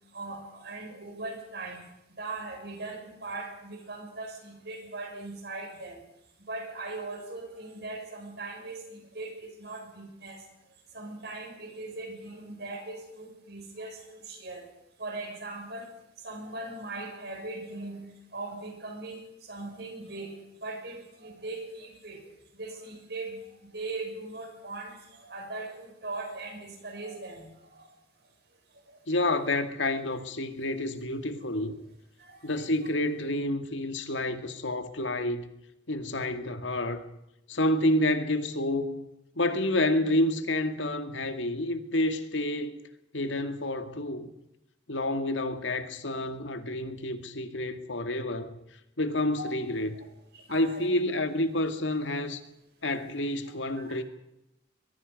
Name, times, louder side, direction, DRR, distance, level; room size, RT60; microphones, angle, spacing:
voice 1, 0.1-1.8 2.1-6.0 6.5-10.5 10.9-14.7 15.0-18.0 18.3-27.9 28.9-29.0 32.2-32.9 49.4-49.5 49.9-50.1 50.3-50.9 53.8-54.0, right 2 dB, 60° right, 6.4 m, -40 dB
voice 2, 29.1-31.8 32.4-35.5 35.9-37.0 37.5-39.1 39.4-42.8 43.1-44.3 44.9-48.6 49.0-50.0 50.5-52.4 52.8-54.0, left 1 dB, 85° left, 2.2 m, -29 dB
22.5 x 22.0 x 5.4 m
head